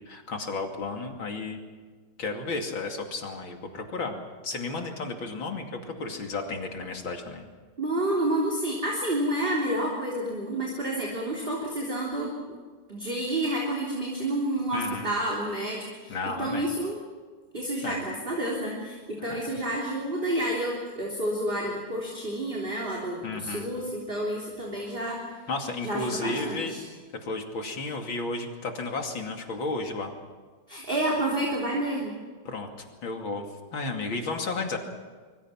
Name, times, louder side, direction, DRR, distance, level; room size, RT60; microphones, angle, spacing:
voice 1, 0.1-1.6 2.2-4.2 4.4-7.5 14.7-15.1 16.1-16.7 17.8-18.0 19.2-19.5 23.2-23.7 25.5-26.8 27.2-30.1 32.5-32.7 33.0-33.5 33.7-34.8, left 3 dB, 65° left, 3 dB, 3.4 m, -33 dB
voice 2, 7.8-12.6 12.9-17.0 17.5-25.2 25.8-26.8 30.7-32.2, right 1 dB, 25° right, -3 dB, 3.6 m, -29 dB
25.5 x 23.5 x 5.9 m, 1.5 s
omnidirectional pair, 2.4 m